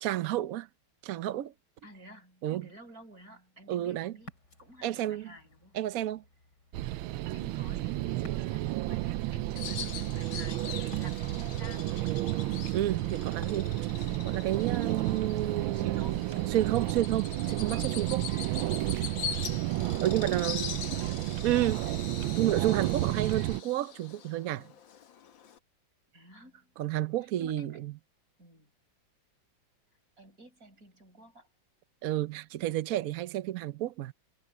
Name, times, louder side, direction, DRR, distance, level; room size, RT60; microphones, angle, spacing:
voice 1, 0.0-0.7 1.0-1.5 2.4-2.6 3.7-4.2 4.8-5.3 5.7-6.2 12.7-13.8 14.2-16.2 16.5-18.3 20.0-20.7 21.4-21.8 22.4-24.7 26.8-27.9 32.0-34.1, right 13 dB, 70° right, 0.8 m, -31 dB
voice 2, 1.8-4.3 4.6-5.8 7.3-12.4 15.7-16.6 19.2-19.8 20.2-21.7 26.1-26.7 27.2-27.8 28.4-28.7 30.2-31.5, equal, 45° right, 6.2 m, -52 dB
Ocean, 4.2-15.3, left 1 dB, 55° left, 5.5 m, -56 dB
sound 1, 6.7-23.6, right 16 dB, 85° right, 1.4 m, -32 dB
Bird vocalization bird call bird song, 9.6-25.6, left 8 dB, 70° left, 2.0 m, -43 dB
omnidirectional pair, 2.2 m